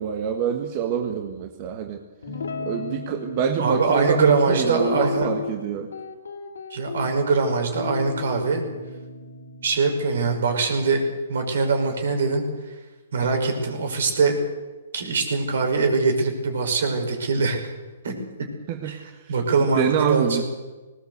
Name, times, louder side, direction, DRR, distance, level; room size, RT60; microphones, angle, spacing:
voice 1, 0.0-2.0 2.6-5.9 18.7-19.3 19.7-20.4, right 8 dB, 40° right, 5 dB, 1.7 m, -26 dB
Guitar, 2.2-3.4 4.7-5.6 5.9-7.1 7.7-11.1, left 4 dB, 85° left, 3.0 m, -34 dB
voice 2, 3.6-5.3 6.7-8.6 9.6-11.0 11.3-12.4 13.1-14.4 14.9-17.6 18.0-18.5 18.8-20.4, right 4 dB, 70° right, 5 dB, 5.6 m, -23 dB
19.0 x 18.5 x 8.2 m, 1.2 s
hypercardioid pair, 145°, 0 cm